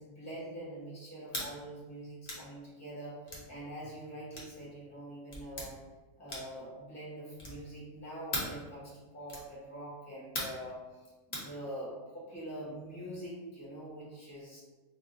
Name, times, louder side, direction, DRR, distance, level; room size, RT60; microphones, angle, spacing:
voice 1, 0.0-5.8 6.2-14.6, right 1 dB, 15° left, -7 dB, 1.2 m, -44 dB
sound 1, 1.3-1.5 2.2-2.5 3.3-3.5 4.3-4.6 5.3-5.7 6.3-6.6 7.4-7.7 8.3-8.6 9.3-9.5 10.3-10.6 11.3-11.5, left 1 dB, 35° left, 0.9 m, -38 dB
3.5 x 2.3 x 4.2 m, 1.2 s
omnidirectional pair, 1.3 m